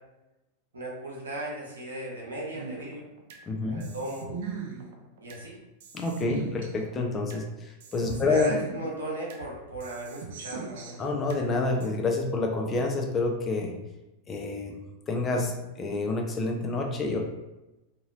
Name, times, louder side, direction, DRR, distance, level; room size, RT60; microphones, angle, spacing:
voice 1, 0.7-3.0 3.6-4.3 5.2-5.6 8.0-11.0, right 1 dB, 70° right, -4 dB, 0.9 m, -37 dB
sound 1, 2.5-3.4 3.8-5.4 5.8-7.4 7.8-9.4 9.8-11.4 11.8-11.9, right 5 dB, 55° right, 0.5 m, -40 dB
voice 2, 3.5-3.8 5.9-8.5 11.0-13.7 14.3-14.8 15.1-17.2, left 3 dB, 25° left, 1 dB, 0.5 m, -28 dB
2.9 x 2.6 x 2.5 m, 0.99 s
figure-of-eight pair, 90°, 0 cm